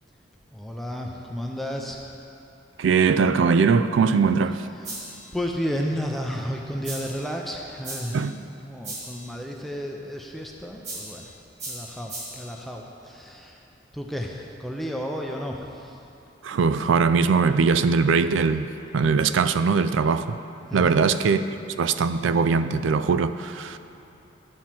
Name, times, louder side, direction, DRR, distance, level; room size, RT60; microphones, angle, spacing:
voice 1, 0.5-2.2 4.8-5.0 5.3-8.2 8.6-11.3 11.7-13.6 13.9-16.0 20.7-21.0, equal, ahead, 0 dB, 0.5 m, -32 dB
voice 2, 2.8-4.7 8.1-8.3 16.4-20.4 20.7-21.4 21.8-23.8, right 5 dB, 75° right, 12 dB, 0.4 m, -21 dB
sound 1, 4.8-5.3 6.8-7.3 7.8-8.3 8.8-9.3 10.8-11.3 11.6-12.5, right 2 dB, 35° right, 1.6 m, -37 dB
11.5 x 4.3 x 7.4 m, 2.9 s
head